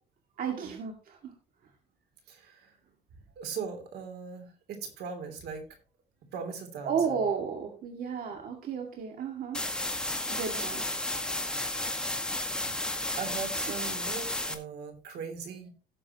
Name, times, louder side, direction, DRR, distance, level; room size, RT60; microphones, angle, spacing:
voice 1, 0.4-1.3 6.8-9.6 10.3-10.8, right 6 dB, 60° right, 2 dB, 2.2 m, -33 dB
voice 2, 2.3-2.7 3.4-5.6 6.3-7.2 12.8-15.7, right 6 dB, 75° right, 6 dB, 3.1 m, -39 dB
sound 1, 9.5-14.5, left 1 dB, 5° left, 1.7 m, -32 dB
17.0 x 6.9 x 3.0 m, 0.35 s
cardioid pair, 110°, 17 cm